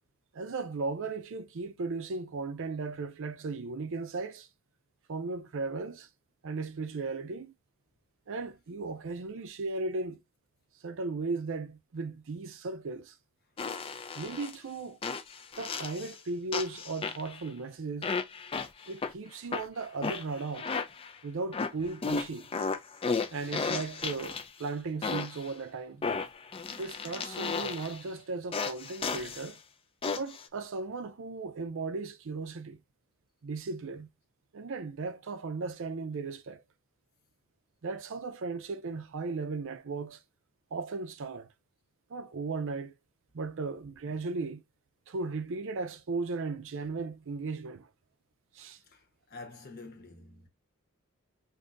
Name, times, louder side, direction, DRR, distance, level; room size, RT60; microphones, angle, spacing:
voice 1, 0.3-4.5 5.1-6.1 6.4-7.5 8.3-10.2 10.8-13.2 14.2-15.0 15.6-18.1 18.9-20.7 21.2-22.5 23.3-26.0 26.8-29.6 30.1-32.8 33.4-34.1 34.5-36.6 37.8-40.2 40.7-41.5 42.1-42.9 43.3-44.6 45.1-47.9 48.5-48.8, right 3 dB, 65° right, 0.5 m, -36 dB
sound 1, 13.6-14.6 15.0-16.2 16.5-17.5 18.0-19.1 19.5-21.2 21.5-24.6 25.0-25.5 26.0-28.0 28.5-29.5 30.0-30.5, left 4 dB, 25° left, 0.3 m, -34 dB
voice 2, 48.9-50.5, left 3 dB, 45° left, 1.0 m, -48 dB
5.2 x 2.6 x 2.4 m
head